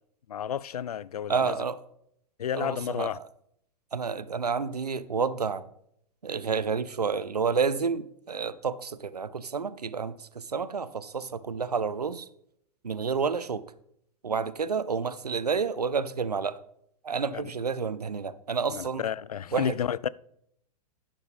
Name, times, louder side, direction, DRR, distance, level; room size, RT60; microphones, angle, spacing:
voice 1, 0.3-1.6 2.4-3.2 17.3-17.5 18.7-20.1, left 9 dB, 70° left, 0.4 m, -31 dB
voice 2, 1.3-1.8 2.5-3.1 3.9-5.6 6.2-10.1 10.5-12.3 12.8-13.6 14.2-16.6 17.0-19.0 19.5-19.7, right 5 dB, 75° right, 0.7 m, -29 dB
11.5 x 10.0 x 3.5 m
figure-of-eight pair, 100°, 20 cm